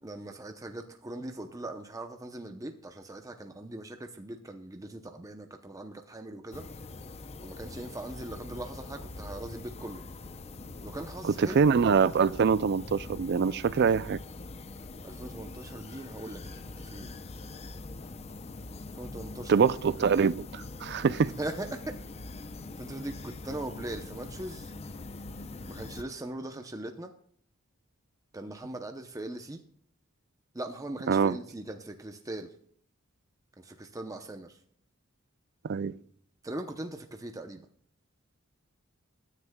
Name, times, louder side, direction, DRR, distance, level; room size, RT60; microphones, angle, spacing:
voice 1, 0.0-6.6 7.4-10.0 10.8-11.6 15.0-17.1 18.9-19.6 21.4-21.9 22.8-24.7 25.6-27.1 28.3-29.6 30.5-32.5 33.6-34.6 36.4-37.6, right 1 dB, 15° right, 0.7 m, -40 dB
sound 1, 6.5-26.0, left 2 dB, 30° left, 0.6 m, -43 dB
voice 2, 11.4-14.2 19.5-21.3 31.1-31.4 35.7-35.9, right 6 dB, 55° right, 0.4 m, -24 dB
20.5 x 9.8 x 2.3 m
head